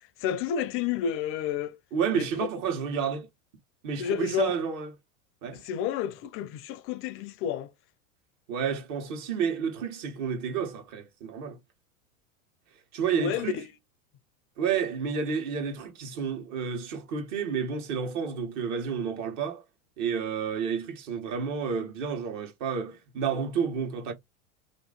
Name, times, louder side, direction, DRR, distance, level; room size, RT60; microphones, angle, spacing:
voice 1, 0.2-1.8 2.1-2.5 4.0-4.5 5.6-7.7 13.2-13.7, left 9 dB, 35° left, 0.4 m, -30 dB
voice 2, 1.9-3.3 3.8-4.9 5.4-5.6 8.5-11.6 12.9-13.6 14.6-19.6 20.0-24.1, right 6 dB, 55° right, 1.4 m, -30 dB
2.9 x 2.6 x 3.9 m
hypercardioid pair, 100°, 42 cm